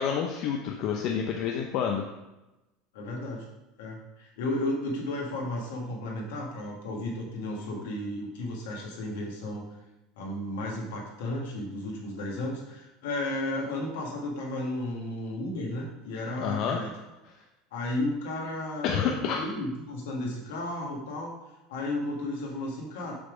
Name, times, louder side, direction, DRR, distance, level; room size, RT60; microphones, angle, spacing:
voice 1, 0.0-2.0 16.4-16.8 18.8-19.4, left 7 dB, 60° left, 2 dB, 0.7 m, -28 dB
voice 2, 2.9-3.5 3.8-9.6 10.2-16.9 17.7-21.3 21.7-23.1, left 1 dB, 80° left, -1 dB, 1.7 m, -33 dB
7.0 x 3.4 x 5.0 m, 1.0 s
hypercardioid pair, 95°, 0 cm